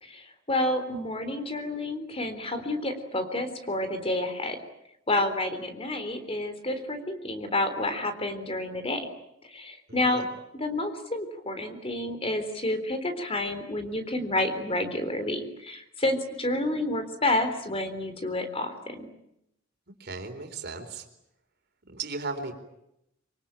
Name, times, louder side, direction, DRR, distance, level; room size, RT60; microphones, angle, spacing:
voice 1, 0.0-4.6 5.1-9.1 9.4-10.2 10.5-19.1, left 1 dB, 30° left, 9 dB, 3.7 m, -29 dB
voice 2, 20.0-21.0 21.9-22.6, right 3 dB, 55° right, 6 dB, 4.1 m, -36 dB
25.5 x 25.0 x 9.0 m, 0.82 s
head